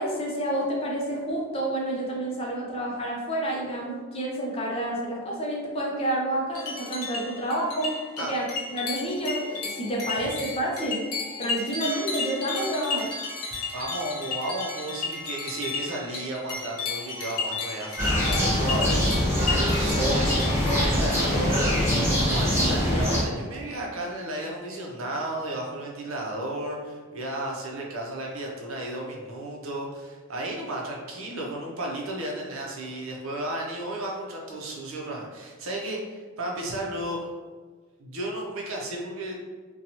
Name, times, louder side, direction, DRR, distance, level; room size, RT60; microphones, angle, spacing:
voice 1, 0.0-8.5 8.7-11.0 11.4-13.1, right 1 dB, 25° left, -2 dB, 0.5 m, -29 dB
sound 1, 6.5-20.5, left 4 dB, 80° left, 0.6 m, -33 dB
voice 2, 13.7-37.4 38.0-39.4, right 1 dB, 65° right, -1 dB, 0.6 m, -33 dB
sound 2, 18.0-23.2, equal, 10° right, 0.7 m, -23 dB
2.7 x 2.2 x 2.9 m, 1.4 s
head